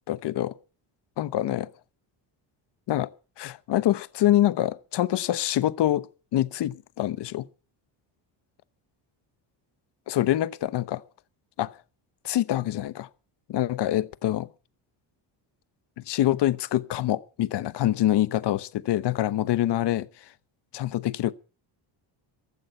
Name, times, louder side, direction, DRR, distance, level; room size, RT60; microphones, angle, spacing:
voice 1, 0.1-0.6 1.2-1.7 2.9-3.1 3.4-6.1 6.3-7.5 10.1-11.0 11.6-11.7 12.2-13.1 13.5-14.5 16.1-20.1 20.7-21.3, left 13 dB, 60° left, 1.1 m, -25 dB
15.5 x 12.5 x 5.6 m
cardioid pair, 115°, 46 cm